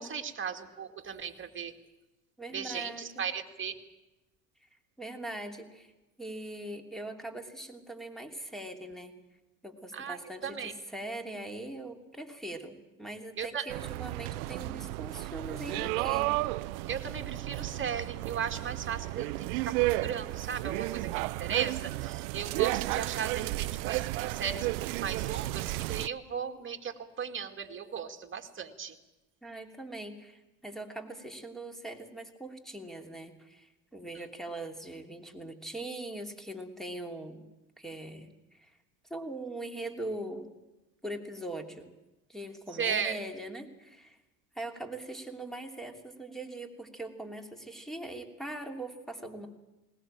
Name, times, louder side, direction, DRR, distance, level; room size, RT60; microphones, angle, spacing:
voice 1, 0.0-1.7 2.5-3.7 9.9-10.7 13.4-13.7 16.9-29.0 42.7-43.2, right 7 dB, 25° right, 4 dB, 2.3 m, -36 dB
voice 2, 2.4-3.2 5.0-5.9 6.2-9.2 9.6-16.3 29.4-37.4 37.8-38.7 39.1-40.5 41.0-41.9 42.3-44.2 44.5-49.5, right 1 dB, ahead, 5 dB, 2.9 m, -41 dB
sound 1, 13.7-26.1, right 20 dB, 70° right, 0.7 m, -33 dB
19.5 x 19.0 x 8.9 m, 1.0 s
hypercardioid pair, 80°, 46 cm